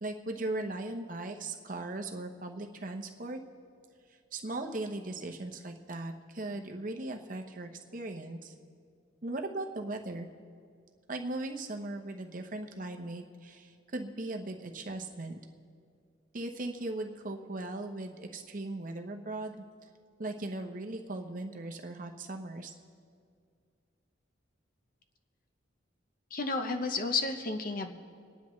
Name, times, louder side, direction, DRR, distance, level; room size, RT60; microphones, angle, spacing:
voice 1, 0.0-3.4 4.3-8.5 9.2-10.3 11.1-15.4 16.3-19.9 20.2-22.7, right 2 dB, 40° right, 3 dB, 0.9 m, -38 dB
voice 2, 26.3-27.9, left 3 dB, 45° left, 6 dB, 0.8 m, -32 dB
26.0 x 10.0 x 3.2 m, 2.2 s
head